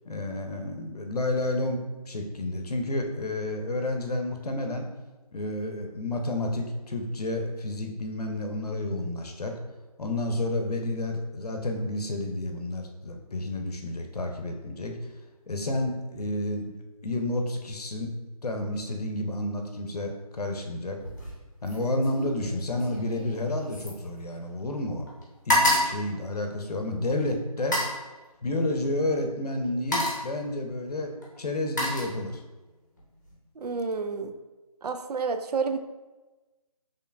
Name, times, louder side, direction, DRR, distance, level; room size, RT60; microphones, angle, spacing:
voice 1, 0.0-4.9 5.3-9.5 10.0-14.9 15.5-16.7 17.0-18.1 18.4-21.0 21.6-25.0 25.5-27.8 28.4-32.4, left 1 dB, 85° left, 4 dB, 0.7 m, -30 dB
sound 1, 21.0-21.4 21.7-24.8 25.1-27.0 27.6-28.0 29.1-29.3 29.6-30.4 31.2-32.6 33.0-33.4, left 1 dB, 30° left, 0.9 m, -29 dB
voice 2, 33.6-34.3 34.8-35.8, right 4 dB, 90° right, 8 dB, 0.4 m, -29 dB
4.6 x 3.1 x 2.2 m, 1.2 s
figure-of-eight pair, 180°, 20 cm